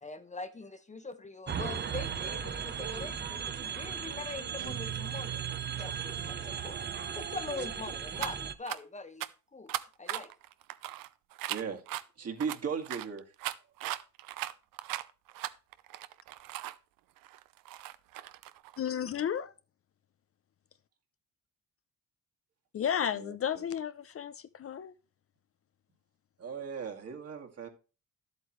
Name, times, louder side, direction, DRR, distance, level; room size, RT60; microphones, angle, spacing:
voice 1, 0.0-5.5 5.7-6.8 7.1-9.3 9.5-9.7 10.0-10.3, left 3 dB, 20° left, 0.9 m, -42 dB
sound 1, 1.5-8.5, right 8 dB, 30° right, 0.8 m, -37 dB
Guitar, 4.6-7.2, right 12 dB, 65° right, 1.3 m, -42 dB
sound 2, 8.2-8.3 8.7-8.8 9.2-9.3 9.7-12.0 12.4-16.8 17.2-18.8, right 15 dB, 90° right, 0.7 m, -38 dB
voice 2, 11.5-11.8 12.2-13.2 23.1-23.6 26.4-27.7, right 6 dB, 45° right, 2.2 m, -37 dB
voice 3, 18.8-19.5 22.7-24.9, left 8 dB, 45° left, 0.6 m, -33 dB
11.5 x 8.1 x 3.1 m
cardioid pair, 100°, 33 cm